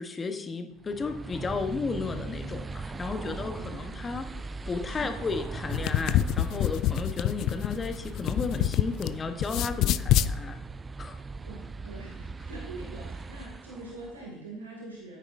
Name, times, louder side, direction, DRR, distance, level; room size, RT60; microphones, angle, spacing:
voice 1, 0.0-4.3 4.6-10.6 11.0-11.2, left 4 dB, 30° left, 7 dB, 1.1 m, -34 dB
sound 1, 0.8-14.3, right 4 dB, 25° right, 0.4 m, -39 dB
voice 2, 3.2-3.9 4.9-5.4 5.7-5.9 11.4-15.2, right 2 dB, 90° right, -3 dB, 2.3 m, -44 dB
sound 2, 5.6-9.1 9.4-10.3, left 12 dB, 55° left, 0.3 m, -26 dB
10.0 x 9.6 x 2.7 m, 0.82 s
hypercardioid pair, 65°, 0 cm